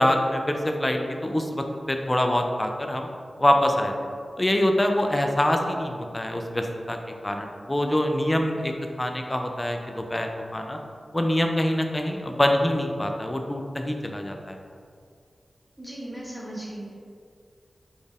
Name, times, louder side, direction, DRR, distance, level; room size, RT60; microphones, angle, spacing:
voice 1, 0.0-3.1 3.4-3.9 4.4-7.0 7.2-8.7 9.0-10.8 11.1-14.6, left 1 dB, 20° left, 3 dB, 0.3 m, -25 dB
voice 2, 15.8-17.0, right 1 dB, 5° right, -6 dB, 1.0 m, -37 dB
4.3 x 2.4 x 3.4 m, 2.2 s
wide cardioid pair, 75°, 0 cm